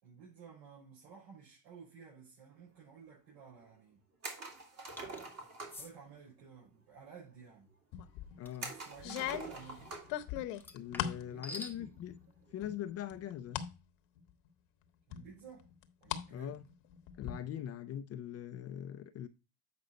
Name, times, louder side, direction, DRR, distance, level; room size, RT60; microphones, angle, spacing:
voice 1, 0.0-4.0 5.7-7.7 8.7-10.0 11.3-11.9 15.1-15.7 16.0-16.6, right 6 dB, 70° right, 5.2 m, -54 dB
sound 1, 4.2-5.9 8.6-10.2 10.6-10.7 12.3-12.6, right 3 dB, 30° right, 2.3 m, -45 dB
sound 2, 5.0-5.2 5.7-5.9 8.4-8.7 10.5-11.8, left 2 dB, 5° left, 1.0 m, -47 dB
sound 3, 7.9-8.4 9.0-11.3 11.7-12.3 12.6-13.7 14.2-14.3 15.1-16.3 16.6-17.3, left 11 dB, 60° left, 1.1 m, -39 dB
voice 2, 8.4-8.7 10.7-12.1 12.5-13.6 16.3-16.6 17.2-19.3, left 10 dB, 30° left, 0.5 m, -42 dB
8.1 x 5.3 x 3.9 m
supercardioid pair, 125°, 48 cm